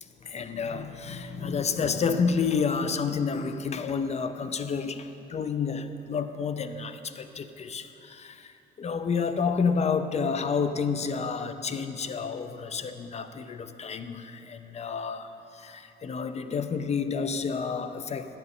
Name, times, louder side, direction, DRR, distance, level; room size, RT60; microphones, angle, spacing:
voice 1, 0.0-18.4, left 5 dB, 35° left, 10 dB, 0.5 m, -30 dB
10.5 x 8.2 x 3.7 m, 3.0 s
cardioid pair, 90°, 20 cm